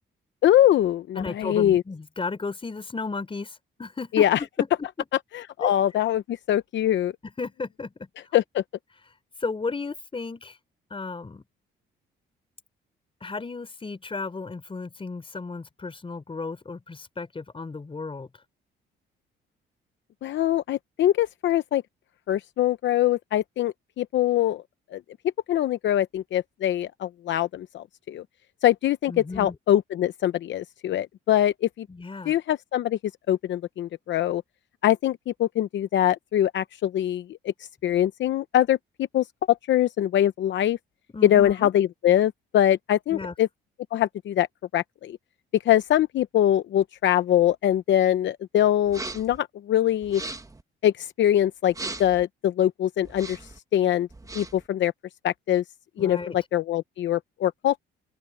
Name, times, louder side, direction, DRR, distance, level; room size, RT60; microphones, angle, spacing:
voice 1, 0.4-1.8 4.1-4.4 5.3-7.1 8.3-8.6 20.2-21.8 22.3-24.6 24.9-25.0 25.5-28.2 28.6-31.9 32.3-33.0 33.3-34.4 34.8-37.5 37.8-38.8 39.1-40.8 41.2-43.5 43.9-44.5 44.7-45.2 45.6-50.2 50.8-51.7 52.0-53.4 53.7-54.1 54.3-54.9 55.2-55.6 56.0-57.8, left 11 dB, 70° left, 0.8 m, -23 dB
voice 2, 1.2-5.1 5.6-5.7 7.4-8.1 9.4-10.6 10.9-11.4 13.2-18.3 29.1-29.5 31.9-32.3 41.1-41.7 43.1-43.3 56.0-56.4, left 4 dB, 25° left, 4.7 m, -34 dB
sound 1, 48.9-49.4 50.0-50.6 51.7-52.2 53.0-53.6 54.1-54.7, right 2 dB, 15° right, 1.6 m, -38 dB
open air
cardioid pair, 90°, 20 cm